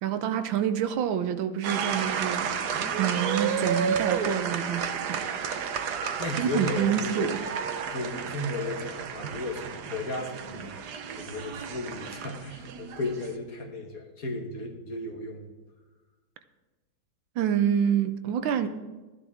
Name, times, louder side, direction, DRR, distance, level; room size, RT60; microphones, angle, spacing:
voice 1, 0.0-2.5 3.0-5.2 6.4-7.4 17.4-18.7, right 9 dB, 80° right, 10 dB, 1.5 m, -27 dB
sound 1, 1.6-13.4, right 7 dB, 65° right, 1.2 m, -32 dB
voice 2, 6.2-7.3 7.9-10.7 11.1-15.5, left 2 dB, 50° left, 2 dB, 1.6 m, -34 dB
14.0 x 11.0 x 3.5 m, 1.2 s
omnidirectional pair, 2.1 m